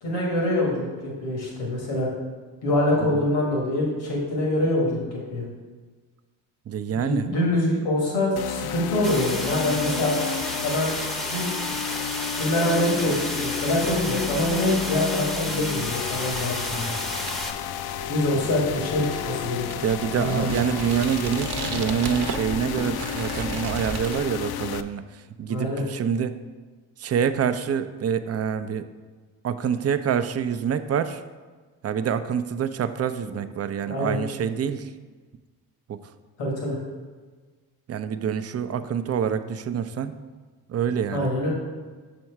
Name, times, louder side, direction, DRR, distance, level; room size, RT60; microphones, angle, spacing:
voice 1, 0.0-2.1 2.6-5.4 6.9-10.1 10.6-10.9 11.2-11.5 12.3-16.9 18.1-19.6 20.2-20.5 25.5-25.8 33.2-33.3 33.8-34.1 36.4-36.8 41.1-41.5, left 1 dB, 85° left, -2 dB, 1.4 m, -25 dB
voice 2, 6.7-7.2 19.8-26.4 27.0-28.9 29.4-31.2 31.8-34.9 35.9-36.0 37.9-40.2 40.7-41.3, right 8 dB, 35° right, 11 dB, 0.4 m, -26 dB
sound 1, 8.4-24.8, left 9 dB, 55° left, 0.5 m, -32 dB
sound 2, 9.0-17.5, equal, ahead, 0.7 m, -32 dB
sound 3, 14.2-24.2, right 5 dB, 55° right, 0.8 m, -37 dB
6.2 x 4.3 x 4.6 m, 1.4 s
hypercardioid pair, 45°, 47 cm